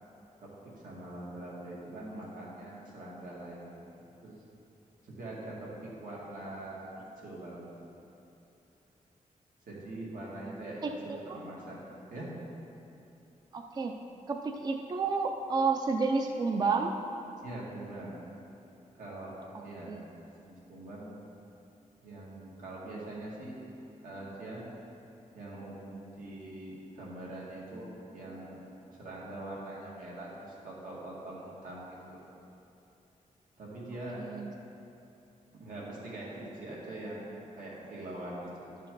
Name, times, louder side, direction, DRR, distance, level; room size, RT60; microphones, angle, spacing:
voice 1, 0.8-3.7 3.9-4.3 5.0-8.0 9.7-11.8 12.1-12.3 17.4-18.2 19.0-19.3 19.6-20.0 20.4-21.2 22.0-23.6 24.0-24.6 25.3-28.6 28.9-32.2 33.6-34.2 35.5-38.7, right 1 dB, 80° right, -6 dB, 2.2 m, -43 dB
voice 2, 13.5-14.0 14.3-16.9 19.9-20.0 34.2-34.5, right 4 dB, 30° right, 4 dB, 0.3 m, -30 dB
11.0 x 6.6 x 4.0 m, 2.8 s
wide cardioid pair, 180°, 14 cm